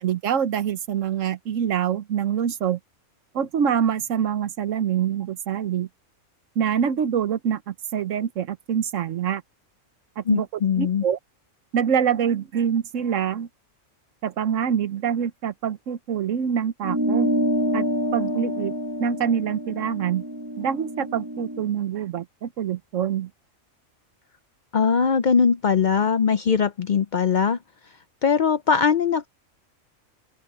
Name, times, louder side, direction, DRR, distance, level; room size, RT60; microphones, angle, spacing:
voice 1, 0.0-2.8 3.3-5.9 6.6-9.4 10.2-10.5 10.8-11.2 11.7-13.5 14.2-17.3 17.7-17.9 18.1-18.7 19.0-20.2 20.6-23.3, right 8 dB, 75° right, 1.2 m, -25 dB
voice 2, 10.3-11.0 24.7-27.6 28.2-29.3, left 6 dB, 55° left, 0.5 m, -21 dB
sound 1, 16.8-21.6, equal, 15° right, 1.4 m, -27 dB
open air
omnidirectional pair, 1.4 m